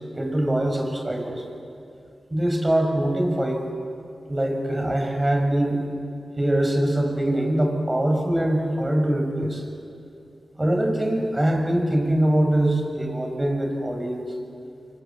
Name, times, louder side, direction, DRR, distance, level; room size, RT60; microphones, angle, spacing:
voice 1, 0.1-1.4 2.3-3.7 4.3-5.8 6.4-9.6 10.6-14.3, right 1 dB, 25° right, 3 dB, 6.8 m, -23 dB
24.5 x 22.5 x 9.4 m, 2.5 s
cardioid pair, 40°, 0 cm